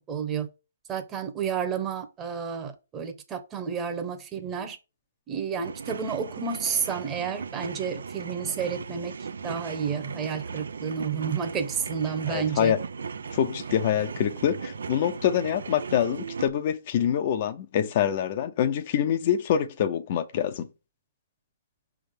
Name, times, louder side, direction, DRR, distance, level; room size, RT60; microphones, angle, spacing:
voice 1, 0.1-0.5 0.9-4.8 5.3-9.1 9.4-12.7, right 7 dB, 15° right, 1.0 m, -31 dB
sound 1, 5.5-16.5, right 5 dB, 75° right, 0.6 m, -37 dB
voice 2, 12.3-12.8 13.3-20.7, left 9 dB, 40° left, 0.7 m, -25 dB
5.7 x 3.5 x 5.3 m
hypercardioid pair, 145°, 0 cm